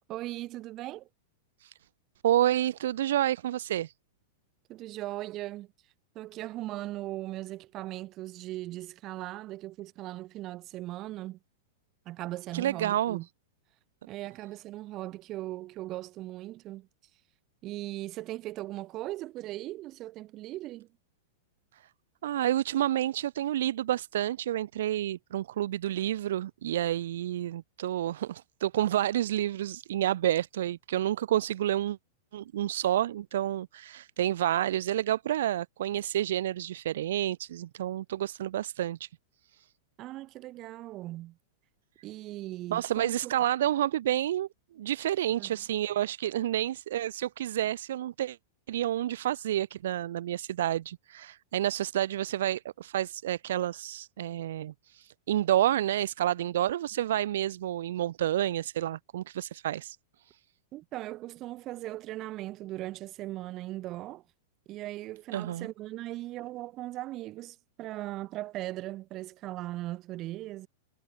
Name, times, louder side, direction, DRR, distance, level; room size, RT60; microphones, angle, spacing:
voice 1, 0.1-1.1 4.7-5.7 6.2-11.4 12.1-13.3 14.1-16.9 17.6-20.9 40.0-41.4 42.0-43.4 45.4-45.5 60.7-64.2 64.7-70.7, right 16 dB, 35° right, 2.0 m, -39 dB
voice 2, 2.2-3.9 12.5-13.2 22.2-32.0 32.3-39.1 42.7-44.5 44.8-48.4 48.7-60.0 65.3-65.7, right 12 dB, 60° right, 0.4 m, -29 dB
figure-of-eight pair, 95°, 0 cm